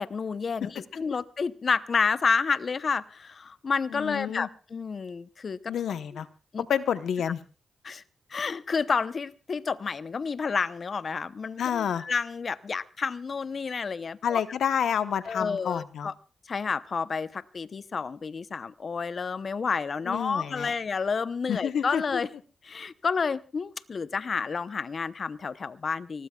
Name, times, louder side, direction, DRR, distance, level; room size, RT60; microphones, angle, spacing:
voice 1, 0.0-5.7 6.1-6.2 6.5-6.7 7.8-8.0 8.3-14.4 15.3-16.1 16.5-22.3 22.6-26.3, left 5 dB, 55° left, 15 dB, 0.8 m, -30 dB
voice 2, 3.9-4.5 5.7-6.3 6.7-7.4 11.6-12.0 14.2-16.1 20.0-20.7 21.5-22.2, left 8 dB, 80° left, 11 dB, 1.0 m, -29 dB
24.5 x 18.5 x 2.4 m, 0.35 s
cardioid pair, 60°, 0 cm